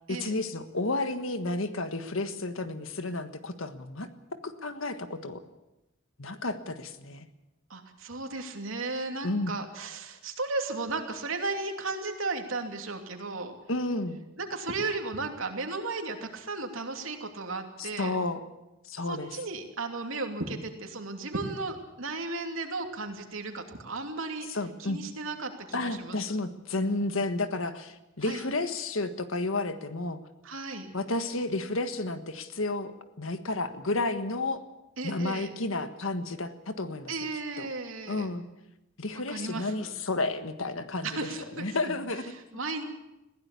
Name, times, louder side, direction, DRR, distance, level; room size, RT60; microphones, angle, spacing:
voice 1, 0.1-4.1 4.4-5.4 6.2-7.3 9.2-9.5 13.7-14.2 17.8-18.4 18.8-19.3 24.5-25.0 25.7-30.2 30.9-32.9 33.2-34.6 35.0-37.1 37.6-37.7 38.1-38.4 39.0-42.3, left 2 dB, 85° left, 10 dB, 1.5 m, -31 dB
voice 2, 7.7-13.5 14.4-18.1 19.1-24.5 24.8-26.2 28.2-28.4 30.4-30.9 35.0-35.5 37.1-38.3 39.3-39.9 41.0-42.0 42.3-42.8, right 3 dB, 85° right, 4 dB, 2.8 m, -35 dB
21.0 x 16.0 x 8.4 m, 0.96 s
head